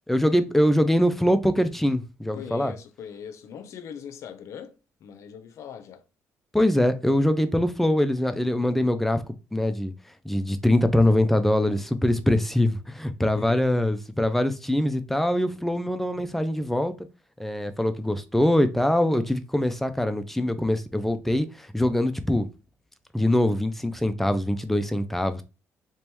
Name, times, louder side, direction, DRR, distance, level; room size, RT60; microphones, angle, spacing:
voice 1, 0.1-2.7 6.5-9.2 9.5-9.9 10.3-16.9 17.4-22.5 23.1-25.4, left 1 dB, 5° left, 0.4 m, -23 dB
voice 2, 2.3-4.8 5.0-6.0 13.2-13.6, left 8 dB, 60° left, 0.5 m, -41 dB
3.4 x 3.0 x 3.0 m
cardioid pair, 130°, 6 cm